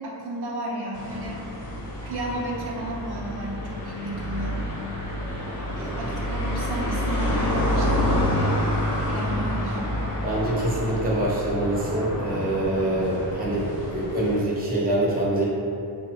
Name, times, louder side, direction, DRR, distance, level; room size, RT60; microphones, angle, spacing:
voice 1, 0.0-1.5 2.1-4.7 5.8-8.6 9.0-9.8, right 1 dB, 65° right, -3 dB, 0.6 m, -33 dB
sound 1, 0.9-14.4, left 1 dB, 50° left, 0.8 m, -28 dB
voice 2, 5.8-6.1 10.2-15.5, right 1 dB, 20° right, -5 dB, 0.6 m, -25 dB
3.6 x 2.0 x 4.1 m, 2.6 s
wide cardioid pair, 135°, 42 cm